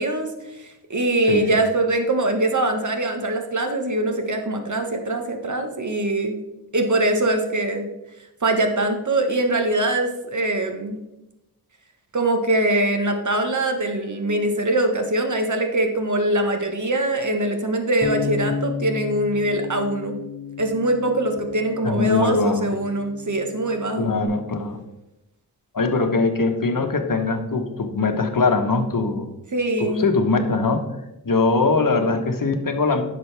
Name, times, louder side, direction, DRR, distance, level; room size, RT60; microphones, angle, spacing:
voice 1, 0.0-6.4 6.7-7.9 8.4-11.0 12.1-20.1 20.6-24.1 29.5-30.1, right 1 dB, 50° right, 5 dB, 1.3 m, -23 dB
Bass guitar, 18.0-24.3, left 5 dB, 30° left, 1.6 m, -33 dB
voice 2, 21.8-22.7 24.0-24.8 25.7-29.3 29.8-30.8 31.2-33.0, left 3 dB, 55° left, 5 dB, 1.1 m, -21 dB
10.5 x 6.7 x 3.4 m, 0.93 s
wide cardioid pair, 75°, 39 cm